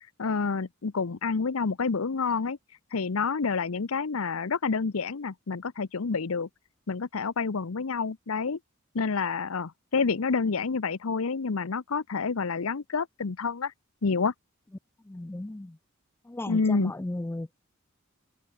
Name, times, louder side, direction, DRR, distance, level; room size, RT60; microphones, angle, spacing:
voice 1, 0.2-2.6 2.9-6.5 6.9-8.6 8.9-13.7 14.0-14.3 16.5-16.9, left 4 dB, 80° left, 0.7 m, -28 dB
voice 2, 15.0-15.8 16.2-17.5, left 1 dB, 10° left, 0.3 m, -35 dB
head